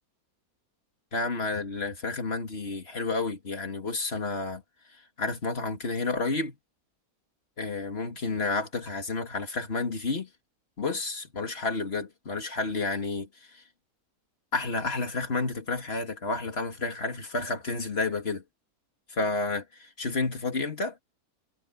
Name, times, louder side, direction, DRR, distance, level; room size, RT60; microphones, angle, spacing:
voice 1, 1.1-4.6 5.2-6.6 7.6-10.3 10.8-13.6 14.5-18.4 19.1-21.0, left 3 dB, 45° left, 2.5 m, -30 dB
omnidirectional pair, 1.5 m